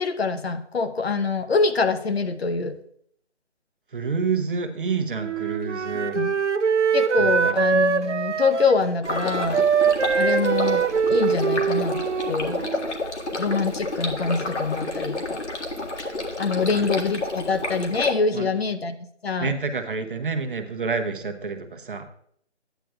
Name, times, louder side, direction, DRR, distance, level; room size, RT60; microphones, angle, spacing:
voice 1, 0.0-2.7 5.9-6.3 6.9-9.6 10.2-12.7 13.4-15.4 16.4-18.9 19.2-19.5, left 4 dB, 60° left, 9 dB, 0.8 m, -25 dB
voice 2, 3.9-6.2 7.2-7.5 16.6-16.9 18.3-18.5 19.4-22.1, right 5 dB, 50° right, 6 dB, 0.9 m, -28 dB
Wind instrument woodwind instrument, 5.2-12.9, right 6 dB, 80° right, 0.7 m, -23 dB
Stream, 9.0-18.1, left 2 dB, 80° left, 1.7 m, -30 dB
11.0 x 9.1 x 2.3 m, 0.66 s
figure-of-eight pair, 160°, 35 cm